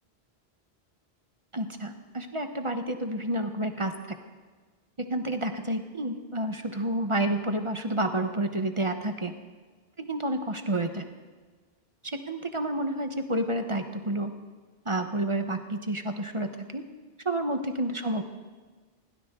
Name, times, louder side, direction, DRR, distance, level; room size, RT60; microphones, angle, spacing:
voice 1, 1.5-3.9 5.1-9.3 10.0-11.0 12.1-14.3 14.8-16.8 17.2-18.2, right 1 dB, 30° right, 6 dB, 1.0 m, -29 dB
20.5 x 17.0 x 3.7 m, 1.4 s
omnidirectional pair, 1.1 m